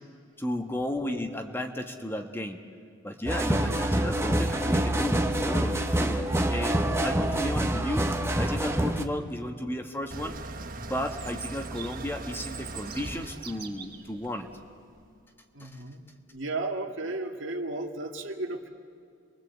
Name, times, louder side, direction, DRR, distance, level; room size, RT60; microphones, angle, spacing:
voice 1, 0.4-2.6 3.0-8.1 8.4-10.4 10.8-14.5 15.6-15.8, left 1 dB, 10° left, 4 dB, 1.4 m, -34 dB
sound 1, 3.3-9.0, right 1 dB, 15° right, 1.2 m, -26 dB
sound 2, 10.1-15.1, right 2 dB, 45° right, 1.1 m, -41 dB
Chirp tweet, 11.1-14.0, right 7 dB, 30° right, 3.2 m, -44 dB
voice 2, 15.5-18.7, right 2 dB, 70° right, 3 dB, 2.3 m, -34 dB
30.0 x 22.5 x 8.1 m, 2.3 s
head